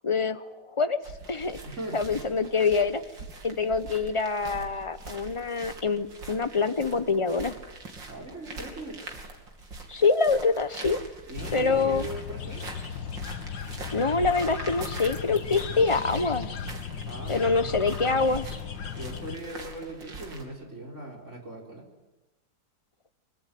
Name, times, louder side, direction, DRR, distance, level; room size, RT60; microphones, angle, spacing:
voice 1, 0.0-1.0 1.3-1.6 1.9-3.0 3.4-7.6 9.9-11.0 11.5-12.1 13.9-16.6 17.3-18.6, left 4 dB, 25° left, 11 dB, 0.6 m, -25 dB
sound 1, 1.0-20.4, right 3 dB, 90° right, 3.8 m, -43 dB
voice 2, 1.6-2.2 8.1-9.0 11.3-12.7 17.1-17.6 19.0-21.8, right 1 dB, 40° right, 1 dB, 5.3 m, -39 dB
sound 2, 11.4-19.4, left 7 dB, 85° left, 2.2 m, -36 dB
24.0 x 24.0 x 9.4 m, 1.0 s
omnidirectional pair, 2.0 m